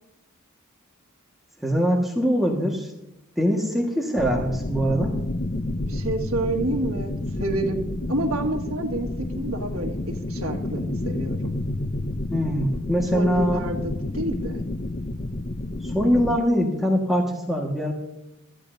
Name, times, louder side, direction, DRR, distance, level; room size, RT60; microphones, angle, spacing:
voice 1, 1.6-2.9 3.4-5.1 12.3-13.7 15.8-17.9, equal, ahead, -2 dB, 1.5 m, -23 dB
sound 1, 4.2-16.4, left 2 dB, 35° left, 0.6 m, -30 dB
voice 2, 5.9-7.1 7.4-7.8 8.1-11.5 13.1-14.6, right 1 dB, 70° right, 0 dB, 1.8 m, -28 dB
26.0 x 14.0 x 2.7 m, 0.89 s
head